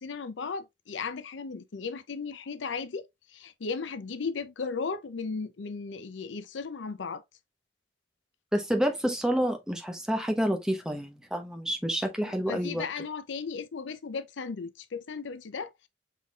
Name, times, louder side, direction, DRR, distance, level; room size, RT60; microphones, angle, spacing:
voice 1, 0.0-3.1 3.3-7.2 12.2-15.9, left 5 dB, 75° left, 0.5 m, -36 dB
voice 2, 8.5-12.8, equal, 5° right, 0.8 m, -28 dB
5.7 x 3.8 x 2.3 m
head